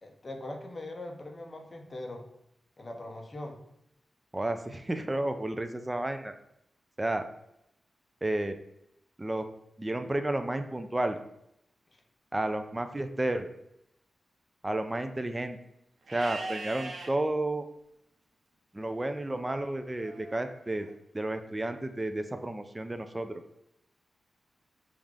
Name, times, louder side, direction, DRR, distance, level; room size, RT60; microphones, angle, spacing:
voice 1, 0.0-2.2 2.8-3.6, left 1 dB, 30° left, 3 dB, 0.6 m, -41 dB
voice 2, 4.3-6.3 7.0-7.3 8.2-8.6 9.2-9.5 9.8-11.2 12.3-13.5 14.6-15.6 16.1-17.7 18.7-20.9 21.1-23.4, right 1 dB, 15° right, 8 dB, 0.3 m, -31 dB
Livestock farm animals working animals, 16.1-17.1 19.9-20.9, right 2 dB, 85° right, 0.7 m, -41 dB
5.3 x 2.4 x 3.2 m, 0.79 s
wide cardioid pair, 150°, 0 cm